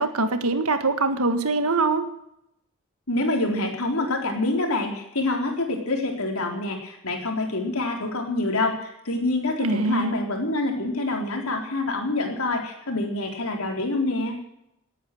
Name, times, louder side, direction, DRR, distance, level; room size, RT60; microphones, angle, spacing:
voice 1, 0.0-2.1 9.6-10.1, right 3 dB, 80° right, 9 dB, 1.7 m, -23 dB
voice 2, 3.1-14.4, left 2 dB, 75° left, 2 dB, 3.8 m, -26 dB
18.5 x 9.4 x 7.8 m, 0.79 s
head